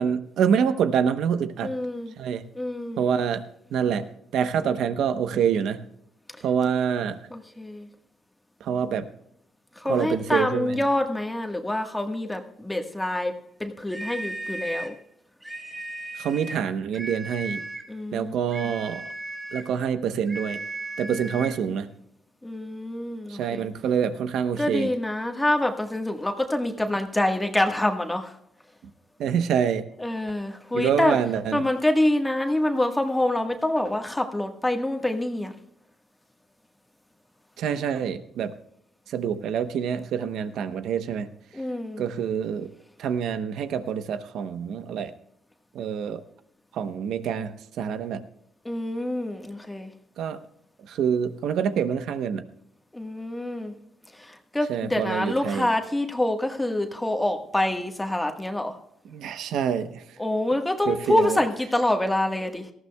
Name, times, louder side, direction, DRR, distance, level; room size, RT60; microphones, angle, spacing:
voice 1, 0.0-1.7 2.2-2.4 3.0-3.4 3.7-4.0 4.3-5.8 6.4-7.2 8.6-9.1 9.9-10.8 16.1-17.6 18.1-19.0 19.5-20.6 21.0-21.9 23.3-24.9 29.2-29.8 30.7-31.6 37.6-38.5 39.1-41.3 42.0-42.7 43.0-45.1 45.7-46.2 46.7-48.3 50.2-50.4 50.9-52.5 54.7-55.7 59.1-60.0 60.9-61.4, right 7 dB, 80° right, 10 dB, 0.9 m, -26 dB
voice 2, 1.6-2.1 2.5-3.0 6.4-6.5 7.3-7.9 9.8-13.3 13.6-15.0 17.9-18.4 21.0-21.7 22.4-23.6 24.6-28.3 30.0-31.2 31.5-35.5 41.5-42.0 48.6-49.9 52.9-53.7 54.1-58.8 60.2-62.7, left 1 dB, 10° left, 4 dB, 1.5 m, -26 dB
sound 1, 13.9-15.0 15.4-16.7 16.9-17.9 18.5-19.7 20.3-21.6, right 2 dB, 15° right, 3.4 m, -36 dB
18.5 x 14.5 x 2.3 m, 0.76 s
cardioid pair, 90°, 0 cm